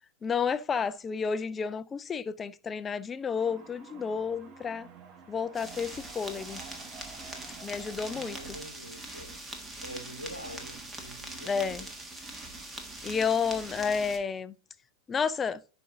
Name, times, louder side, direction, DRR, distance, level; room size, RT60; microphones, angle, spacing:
voice 1, 0.2-4.9 5.3-6.6 7.6-8.6 11.4-11.9 13.0-14.5 15.1-15.6, left 6 dB, 20° left, 0.5 m, -31 dB
sound 1, 3.3-8.7, right 6 dB, 35° right, 1.2 m, -51 dB
sound 2, 5.5-14.2, right 2 dB, 15° right, 1.4 m, -42 dB
voice 2, 7.9-9.3 9.8-11.8, equal, 90° left, 1.0 m, -45 dB
11.5 x 5.1 x 2.6 m
figure-of-eight pair, 90°, 0 cm